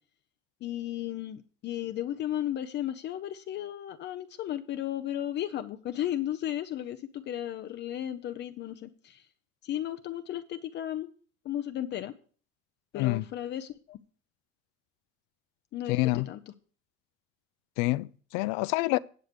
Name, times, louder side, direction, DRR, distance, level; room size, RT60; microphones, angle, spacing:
voice 1, 0.6-9.3 9.6-11.1 11.4-12.1 12.9-14.0 15.7-16.5, left 12 dB, 35° left, 0.5 m, -34 dB
voice 2, 12.9-13.2 15.9-16.3 17.8-19.0, left 20 dB, 80° left, 0.6 m, -27 dB
8.8 x 8.0 x 5.1 m
cardioid pair, 165°, 30 cm